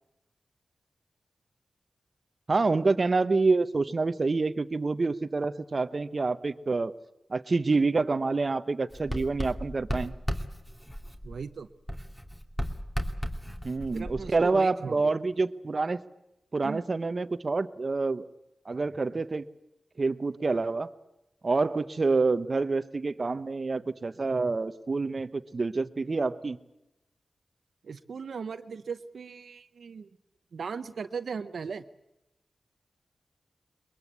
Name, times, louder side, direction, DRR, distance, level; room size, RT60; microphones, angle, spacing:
voice 1, 2.5-7.0 7.3-10.1 13.6-16.0 16.5-18.3 18.7-19.5 20.0-20.9 21.4-26.6, right 3 dB, 50° right, 11 dB, 1.0 m, -27 dB
Writing, 8.9-11.6 11.9-14.6, equal, 10° left, 2.6 m, -35 dB
voice 2, 11.2-11.7 13.9-15.1 16.6-16.8 27.8-30.1 30.5-31.8, right 5 dB, 80° right, 9 dB, 0.9 m, -37 dB
22.0 x 22.0 x 8.3 m, 0.90 s
cardioid pair, 60°, 0 cm